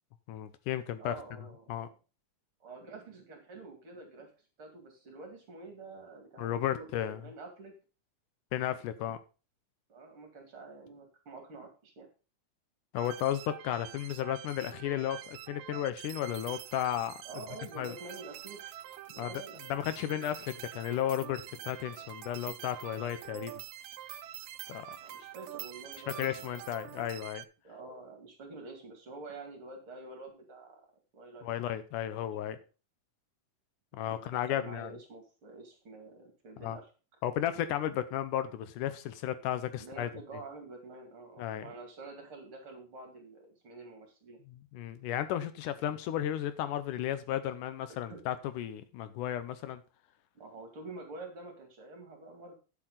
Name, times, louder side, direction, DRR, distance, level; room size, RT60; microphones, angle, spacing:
voice 1, 0.3-1.2 1.7-1.9 6.4-7.2 8.5-9.2 12.9-17.1 17.8-18.0 19.2-19.3 19.7-23.5 24.7-25.0 26.2-27.4 31.4-32.6 33.9-34.9 36.6-36.8 37.2-40.1 41.4-41.7 44.5-49.8, left 11 dB, 80° left, 12 dB, 2.2 m, -34 dB
voice 2, 1.0-1.8 2.6-4.3 4.6-7.7 9.9-12.1 17.2-18.6 19.1-19.6 20.1-20.2 25.0-27.0 27.6-30.9 31.1-31.5 32.4-32.5 34.1-36.9 39.8-44.4 48.1-48.2 50.3-52.6, right 3 dB, 45° right, 3 dB, 2.8 m, -48 dB
sound 1, 13.0-27.5, right 13 dB, 80° right, 1.8 m, -46 dB
9.4 x 7.5 x 4.0 m, 0.33 s
omnidirectional pair, 3.7 m